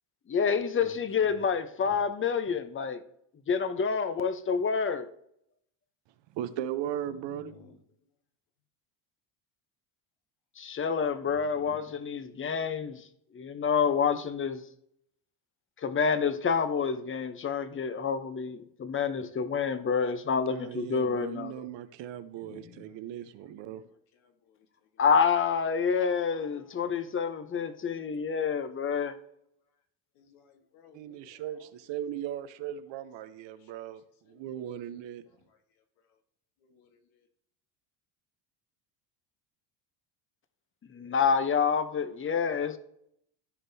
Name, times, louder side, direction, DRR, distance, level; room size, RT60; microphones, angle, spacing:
voice 1, 0.3-3.0 3.5-5.1 10.6-13.0 13.3-14.6 15.8-21.5 25.0-29.2 40.9-42.8, left 6 dB, 25° left, 0.8 m, -28 dB
voice 2, 0.8-1.4 1.8-2.0 7.1-7.8 11.3-11.8 22.3-23.6 24.2-24.7 24.9-25.0 26.3-26.8 30.1-31.7 33.6-33.7 34.2-34.4 36.6-37.0 42.6-42.7, left 7 dB, 75° left, 1.6 m, -55 dB
voice 3, 6.3-7.6 20.5-23.8 30.9-35.2, right 10 dB, 65° right, 0.8 m, -38 dB
14.0 x 5.2 x 2.8 m
supercardioid pair, 95°, 48 cm